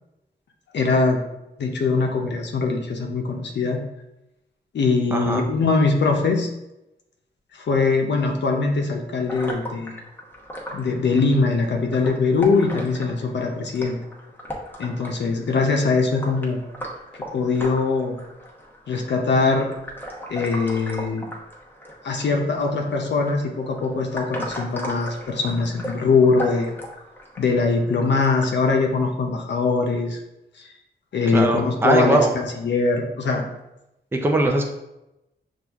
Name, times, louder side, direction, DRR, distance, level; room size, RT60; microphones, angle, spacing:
voice 1, 0.7-1.2 1.6-3.8 4.7-6.5 7.5-10.0 10.7-14.0 14.8-16.6 17.3-18.2 18.9-19.7 20.3-21.3 22.0-26.7 27.4-30.2 30.6-30.7 31.1-33.5, left 4 dB, 75° left, 2 dB, 0.6 m, -22 dB
voice 2, 5.1-5.4 31.3-32.3 34.1-34.7, right 2 dB, 10° right, 2 dB, 0.5 m, -20 dB
sound 1, 9.3-28.5, equal, 10° left, 0.9 m, -37 dB
6.1 x 2.4 x 3.4 m, 0.91 s
wide cardioid pair, 110°, 18 cm